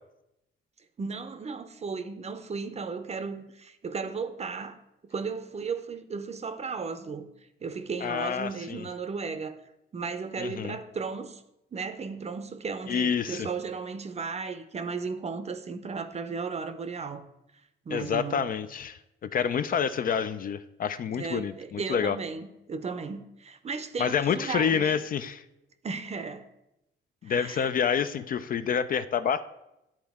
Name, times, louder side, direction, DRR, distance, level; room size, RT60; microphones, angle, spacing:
voice 1, 1.0-4.8 5.0-7.3 7.6-9.6 9.9-11.4 11.7-17.3 17.9-18.4 21.1-24.9 25.8-26.5 27.2-27.7, right 5 dB, 35° right, 0.6 m, -35 dB
voice 2, 8.0-8.8 10.4-10.8 12.9-13.5 17.9-22.2 24.0-25.4 27.2-29.4, left 7 dB, 45° left, 0.4 m, -28 dB
10.5 x 4.3 x 3.5 m
cardioid pair, 90°, 20 cm